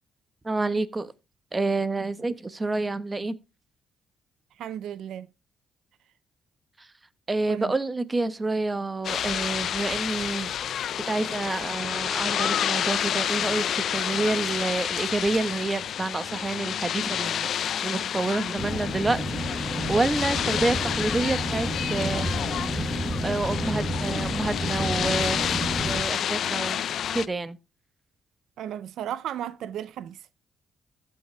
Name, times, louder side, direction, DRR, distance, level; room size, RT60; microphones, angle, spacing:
voice 1, 0.4-1.1 1.5-3.3 6.8-6.9 7.3-10.5 11.1-22.3 22.7-22.9 23.2-25.6 25.8-26.8 27.1-27.6, right 3 dB, 20° right, 1.1 m, -28 dB
voice 2, 4.6-5.3 7.5-7.8 28.6-30.3, right 10 dB, 80° right, 0.5 m, -34 dB
sound 1, 9.0-27.3, left 9 dB, 65° left, 0.4 m, -29 dB
sound 2, 18.6-26.0, equal, 5° left, 4.7 m, -30 dB
15.0 x 5.8 x 3.2 m
cardioid pair, 90°, 0 cm